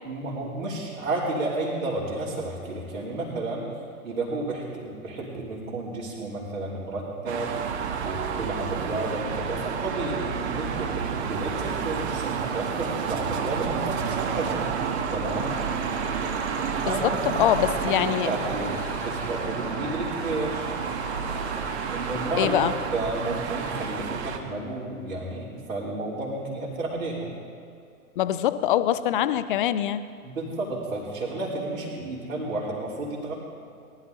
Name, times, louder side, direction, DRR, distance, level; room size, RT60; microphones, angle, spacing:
voice 1, 0.0-3.6 4.0-7.5 8.0-14.7 15.1-15.5 16.7-17.4 17.7-20.7 21.9-22.6 22.9-27.3 30.2-33.3, right 2 dB, 65° right, -8 dB, 3.2 m, -31 dB
sound 1, 7.3-24.4, right 6 dB, 45° right, 1.2 m, -30 dB
sound 2, 15.3-24.0, left 3 dB, 5° left, 1.1 m, -41 dB
voice 2, 17.4-18.3 22.4-22.7 28.2-30.0, left 12 dB, 35° left, 13 dB, 0.5 m, -23 dB
19.0 x 12.0 x 4.0 m, 2.5 s
figure-of-eight pair, 105°, 44 cm